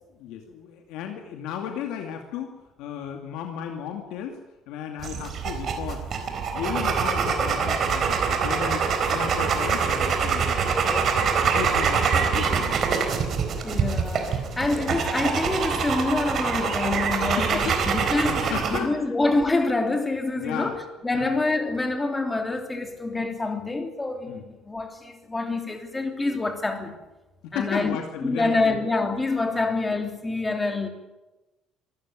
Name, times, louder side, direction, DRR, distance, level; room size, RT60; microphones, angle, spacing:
voice 1, 0.2-4.4 4.7-6.1 6.5-10.6 11.0-11.1 11.4-12.8 17.2-17.8 18.3-19.1 20.4-20.7 21.1-21.3 24.3-24.4 27.4-28.8, left 8 dB, 85° left, 2.5 m, -34 dB
sound 1, 5.0-18.8, right 6 dB, 40° right, 4.0 m, -25 dB
voice 2, 7.1-7.8 10.4-11.3 11.7-11.8 13.6-20.8 21.0-27.0 27.5-28.0 28.2-30.9, left 3 dB, 10° left, 3.0 m, -27 dB
25.0 x 14.0 x 10.0 m
cardioid pair, 160°, 0 cm